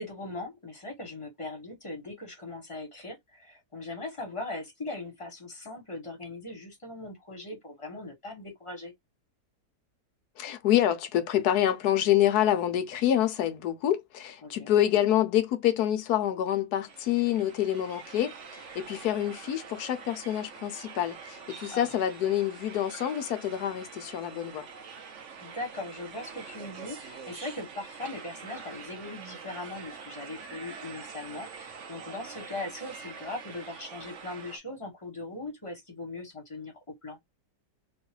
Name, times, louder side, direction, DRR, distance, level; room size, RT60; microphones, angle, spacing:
voice 1, 0.0-8.9 14.4-14.7 21.7-21.9 25.4-36.7 37.0-37.2, left 2 dB, 20° left, 1.6 m, -39 dB
voice 2, 10.4-24.7, left 11 dB, 70° left, 1.1 m, -27 dB
sound 1, 16.9-34.6, right 6 dB, 55° right, 1.0 m, -45 dB
3.1 x 3.0 x 3.0 m
omnidirectional pair, 1.8 m